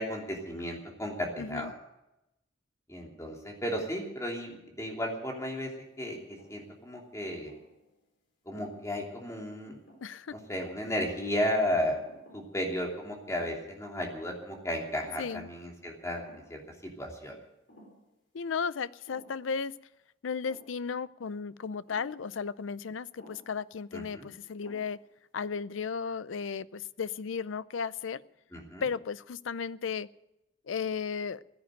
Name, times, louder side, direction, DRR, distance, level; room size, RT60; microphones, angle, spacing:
voice 1, 0.0-1.7 2.9-5.7 6.0-7.5 8.5-9.8 10.3-12.0 12.3-17.4 23.9-24.3 28.5-28.8, equal, 15° left, 0 dB, 3.0 m, -34 dB
voice 2, 1.4-1.7 10.0-10.3 15.2-15.5 18.3-19.7 20.2-25.0 25.3-28.2 28.8-30.1 30.7-31.4, left 6 dB, 90° left, 18 dB, 0.5 m, -35 dB
sound 1, 6.2-6.8 7.2-8.0 8.6-8.9 9.6-10.4 10.8-11.4 12.0-12.6 12.8-12.9 13.3-13.8 14.1-14.2 14.8-15.4 15.7-15.8 16.2-16.6 17.7-18.1 19.1-19.5 20.5-20.8 21.9-22.2 23.2-23.6 24.2-24.3 24.6-25.1, left 1 dB, 60° left, 4.6 m, -56 dB
15.5 x 10.5 x 9.0 m, 0.90 s
head